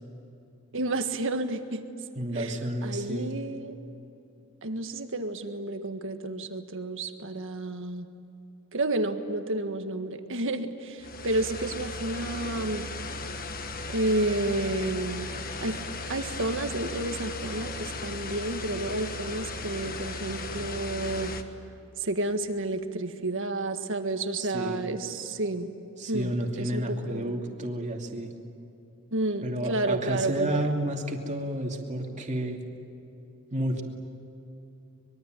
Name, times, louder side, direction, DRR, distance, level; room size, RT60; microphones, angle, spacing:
voice 1, 0.7-1.8 2.3-3.8 4.6-8.1 8.7-12.9 13.9-15.3 15.6-15.8 16.1-21.3 22.0-25.7 26.1-27.5 29.1-30.7, right 2 dB, 65° right, 7 dB, 1.7 m, -31 dB
voice 2, 2.2-3.3 24.4-24.9 26.0-28.3 29.4-32.6 33.5-33.8, right 1 dB, 35° right, 1 dB, 2.7 m, -31 dB
sound 1, 11.0-21.4, left 2 dB, 45° left, 1.4 m, -36 dB
24.5 x 22.0 x 9.2 m, 2.9 s
head